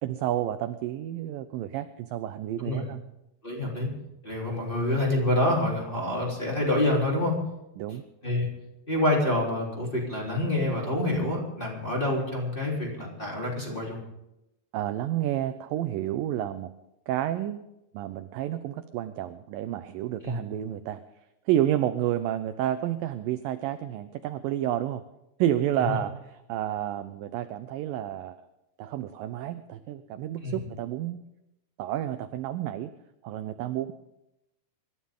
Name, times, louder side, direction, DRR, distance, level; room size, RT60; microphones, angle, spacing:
voice 1, 0.0-3.0 7.8-8.0 14.7-16.7 17.1-17.6 17.9-21.0 21.5-25.0 25.4-26.2 26.5-28.4 28.8-31.2 31.8-32.9 33.2-33.9, right 12 dB, 80° right, 10 dB, 2.0 m, -30 dB
voice 2, 3.4-3.9 4.2-7.3 8.2-8.5 8.9-14.0 20.2-20.4 25.8-26.0 30.4-30.6, left 1 dB, 15° left, -3 dB, 3.4 m, -27 dB
25.0 x 13.0 x 3.7 m, 0.89 s
omnidirectional pair, 4.6 m